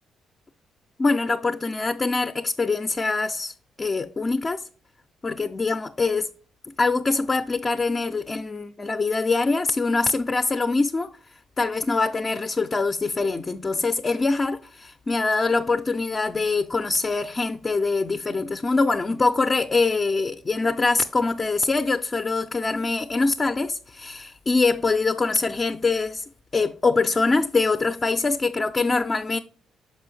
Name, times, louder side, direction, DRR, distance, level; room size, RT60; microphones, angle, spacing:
voice 1, 1.0-4.6 5.2-6.3 6.7-11.1 11.6-26.2 26.5-29.4, left 3 dB, 30° left, 0.4 m, -24 dB
6.1 x 5.2 x 3.2 m
cardioid pair, 90°, 0 cm